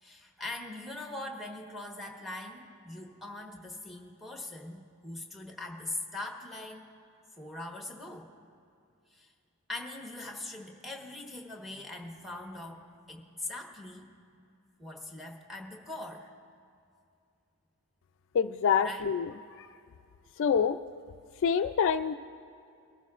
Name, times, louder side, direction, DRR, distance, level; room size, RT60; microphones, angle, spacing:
voice 1, 0.0-6.9 7.4-8.3 9.1-9.3 9.7-14.1 14.8-16.3 18.8-19.1, left 2 dB, ahead, 2 dB, 1.1 m, -41 dB
voice 2, 18.3-19.3 20.4-20.8 21.4-22.1, left 7 dB, 60° left, 9 dB, 0.3 m, -26 dB
21.5 x 13.5 x 2.4 m, 2.5 s
head